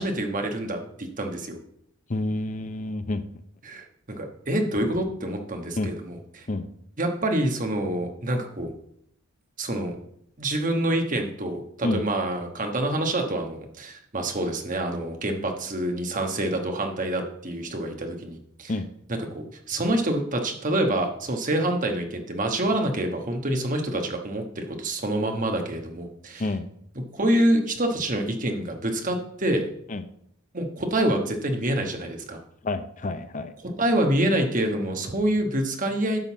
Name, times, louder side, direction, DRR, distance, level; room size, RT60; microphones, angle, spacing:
voice 1, 0.0-1.6 3.6-6.5 7.0-8.7 9.6-9.9 10.4-18.7 19.3-26.4 27.1-29.7 30.5-32.4 33.6-36.2, right 1 dB, 40° right, 4 dB, 1.3 m, -26 dB
voice 2, 2.1-3.2 5.8-5.9 6.5-6.7 11.8-12.0 18.7-18.9 26.4-26.7 29.9-30.0 32.6-33.5, left 2 dB, 35° left, 10 dB, 0.6 m, -28 dB
10.5 x 3.9 x 7.1 m, 0.70 s
head